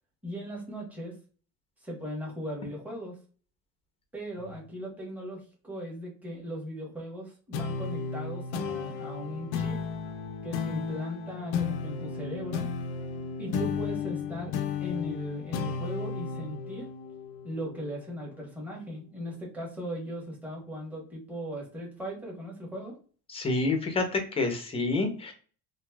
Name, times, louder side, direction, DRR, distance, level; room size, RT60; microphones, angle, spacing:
voice 1, 0.2-1.1 1.8-3.2 4.1-9.8 10.4-12.7 13.4-14.5 14.8-16.9 17.4-23.0, equal, 5° right, -3 dB, 1.2 m, -38 dB
sound 1, 7.5-18.4, left 5 dB, 75° left, 0.5 m, -34 dB
voice 2, 23.3-25.3, left 3 dB, 15° left, 4 dB, 0.7 m, -28 dB
2.9 x 2.6 x 2.3 m, 0.39 s
cardioid pair, 120°, 38 cm